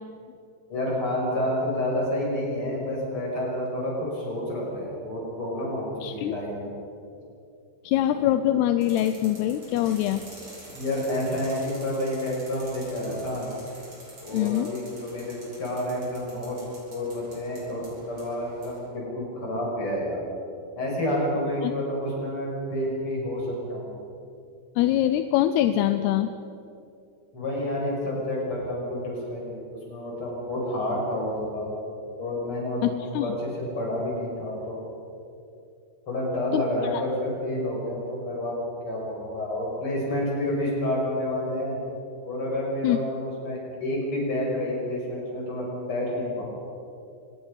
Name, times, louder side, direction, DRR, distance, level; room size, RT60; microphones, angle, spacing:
voice 1, 0.7-6.7 10.7-13.5 14.2-16.6 16.9-20.2 20.8-24.0 27.3-31.7 32.2-34.8 36.1-41.8 42.2-46.4, left 1 dB, 30° left, -3 dB, 7.0 m, -29 dB
voice 2, 6.0-6.3 7.8-10.2 14.3-14.7 21.6-21.7 24.8-26.3 32.8-33.4 36.5-36.6 42.8-43.0, left 12 dB, 80° left, 9 dB, 2.7 m, -23 dB
sound 1, 8.8-18.8, right 1 dB, 30° right, 7.1 m, -47 dB
25.0 x 20.5 x 5.6 m, 2.6 s
omnidirectional pair, 4.8 m